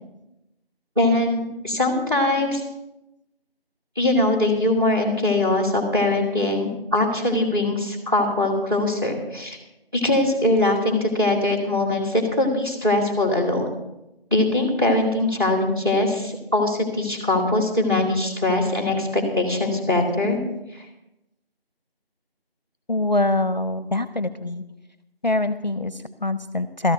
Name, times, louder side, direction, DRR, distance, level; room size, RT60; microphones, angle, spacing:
voice 1, 1.0-2.6 4.0-9.6 9.9-13.7 14.3-20.4 20.7-20.8, left 2 dB, 25° right, 3 dB, 2.3 m, -22 dB
voice 2, 22.9-24.6 25.2-26.9, left 2 dB, 45° left, 13 dB, 0.6 m, -24 dB
13.0 x 6.0 x 8.9 m, 0.91 s
figure-of-eight pair, 175°, 30 cm